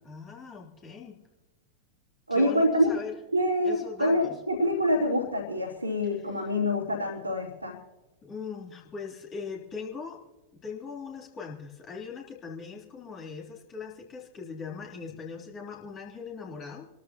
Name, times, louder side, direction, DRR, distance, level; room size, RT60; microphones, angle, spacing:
voice 1, 0.0-1.2 2.3-3.2 3.6-4.4 6.4-6.5 8.2-10.2 10.5-16.8, left 5 dB, 25° left, -2 dB, 3.2 m, -40 dB
voice 2, 2.3-2.9 3.3-7.7, left 1 dB, 85° right, -5 dB, 3.3 m, -26 dB
28.5 x 13.5 x 2.9 m, 1.1 s
figure-of-eight pair, 90°, 0 cm